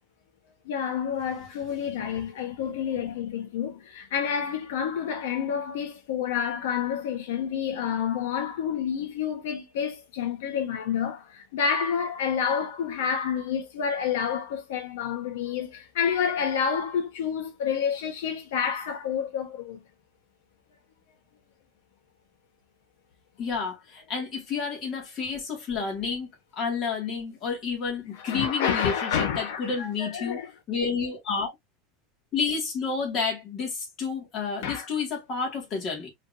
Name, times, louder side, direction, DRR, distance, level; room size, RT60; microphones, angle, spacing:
voice 1, 0.6-19.8 28.2-30.5 34.6-34.9, left 7 dB, 85° left, 1.2 m, -29 dB
voice 2, 23.4-30.4 30.7-31.5 32.3-36.1, left 5 dB, 30° left, 2.3 m, -30 dB
4.5 x 3.4 x 2.7 m
supercardioid pair, 165°, 0 cm